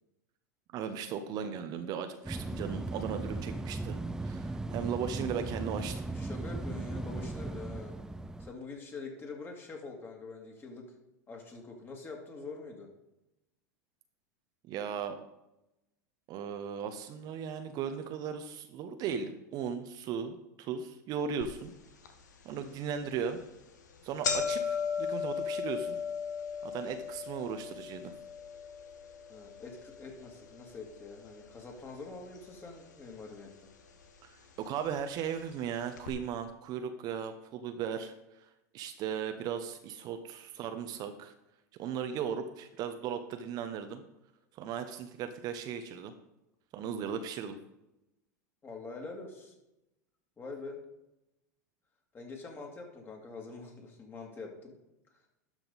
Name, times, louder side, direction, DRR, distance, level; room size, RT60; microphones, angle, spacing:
voice 1, 0.7-6.0 14.7-15.2 16.3-21.7 22.4-23.4 24.0-26.0 26.6-28.1 34.2-34.3 34.6-38.1 38.7-41.3 41.8-44.0 44.5-46.1 46.7-47.6, right 7 dB, 45° right, 8 dB, 0.9 m, -37 dB
sound 1, 2.2-8.5, right 2 dB, 5° right, 0.5 m, -37 dB
voice 2, 6.1-8.0 8.4-10.9 11.3-12.9 29.3-33.5 48.6-49.5 50.4-50.8 52.1-54.8, left 3 dB, 25° left, 1 dB, 2.6 m, -45 dB
sound 2, 21.4-21.5 22.0-22.1 23.0-23.2 23.5-23.6 23.9-32.1 32.3-33.1 33.9-34.0 34.9-35.0 35.3-35.4 36.0-36.1, left 6 dB, 80° left, 1.3 m, -37 dB
12.0 x 5.9 x 4.1 m, 0.92 s
hypercardioid pair, 90°, 9 cm